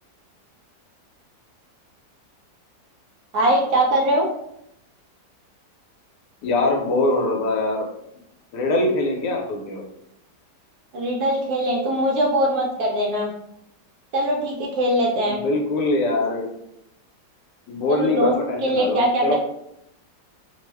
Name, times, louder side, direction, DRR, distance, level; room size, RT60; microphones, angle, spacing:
voice 1, 3.3-4.3 10.9-13.3 14.1-15.4 17.9-18.3 18.6-19.4, right 1 dB, 70° right, -1 dB, 1.0 m, -21 dB
voice 2, 6.4-7.9 8.5-9.9 15.3-16.5 17.7-19.4, left 2 dB, 75° left, 1 dB, 1.2 m, -23 dB
3.0 x 2.0 x 3.3 m, 0.78 s
omnidirectional pair, 1.9 m